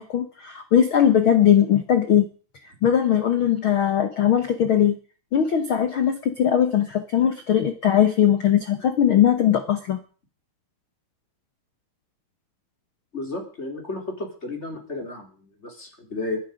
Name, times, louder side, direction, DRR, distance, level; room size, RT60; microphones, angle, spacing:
voice 1, 0.0-2.3 2.8-5.0 5.3-10.0, left 9 dB, 80° left, 8 dB, 1.1 m, -20 dB
voice 2, 13.1-16.4, left 2 dB, 20° left, 2 dB, 3.5 m, -33 dB
22.0 x 10.0 x 5.2 m, 0.39 s
omnidirectional pair, 4.3 m